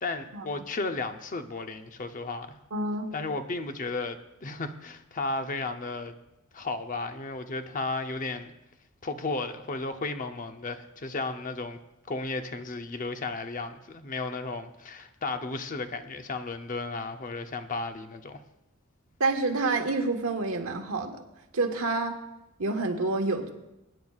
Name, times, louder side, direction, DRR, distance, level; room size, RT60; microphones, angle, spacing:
voice 1, 0.0-2.6 3.1-6.1 6.5-8.5 9.0-11.8 12.1-18.4, left 3 dB, 40° left, 8 dB, 0.7 m, -34 dB
voice 2, 2.7-3.1 19.2-21.2 21.5-22.2 22.6-23.5, right 3 dB, 80° right, 3 dB, 1.3 m, -28 dB
23.5 x 9.6 x 2.4 m, 0.92 s
head